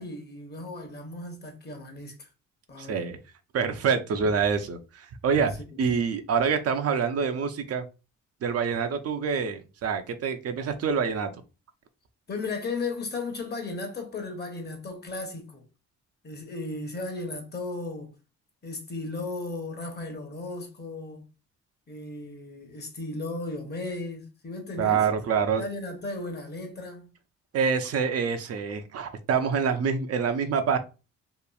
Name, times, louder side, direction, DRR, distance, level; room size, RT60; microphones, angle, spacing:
voice 1, 0.0-2.3 2.7-3.0 5.7-5.8 12.3-15.6 16.2-18.1 18.6-21.2 21.9-25.1 25.6-27.1, left 3 dB, 35° left, 0.9 m, -35 dB
voice 2, 2.8-3.2 3.5-7.8 8.4-11.3 24.8-25.6 27.5-30.8, right 6 dB, 55° right, 0.5 m, -26 dB
2.9 x 2.4 x 2.3 m
cardioid pair, 90°, 30 cm